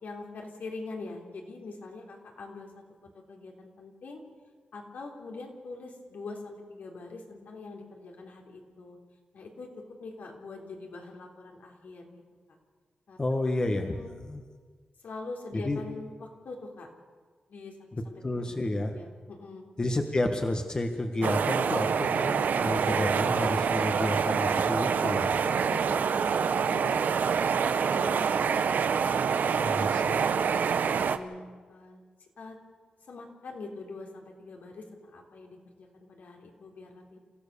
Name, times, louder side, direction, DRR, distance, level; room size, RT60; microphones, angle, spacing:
voice 1, 0.0-2.7 3.3-4.2 4.7-9.0 9.3-9.7 10.0-12.2 13.1-13.2 13.9-14.1 15.0-16.9 17.5-17.8 18.1-18.5 18.9-19.7 25.4-29.3 29.7-30.6 31.0-31.4 31.7-32.0 32.4-32.6 33.1-37.2, left 3 dB, 75° left, 1 dB, 3.7 m, -43 dB
voice 2, 13.2-14.4 15.6-15.8 18.2-19.0 19.8-25.4 29.5-30.1, left 1 dB, 25° left, 5 dB, 1.5 m, -30 dB
sound 1, 21.2-31.2, right 6 dB, 80° right, 0.9 m, -26 dB
28.5 x 15.0 x 6.9 m, 1.5 s
wide cardioid pair, 125°, 3 cm